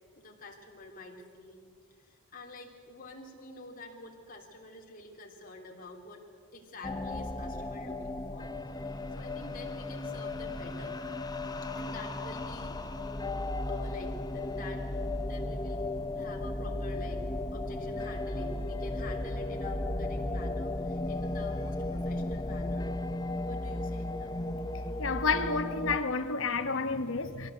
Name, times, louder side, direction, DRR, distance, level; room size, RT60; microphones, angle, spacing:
voice 1, 0.1-1.6 1.9-6.2 6.5-11.0 11.7-12.8 13.6-14.9 15.2-15.8 16.1-22.9 23.4-24.4, left 2 dB, 40° left, 3.2 m, -48 dB
sound 1, 6.8-26.0, left 2 dB, 20° left, 0.8 m, -35 dB
voice 2, 25.0-27.5, left 4 dB, 65° left, 1.3 m, -30 dB
23.0 x 17.5 x 8.1 m
head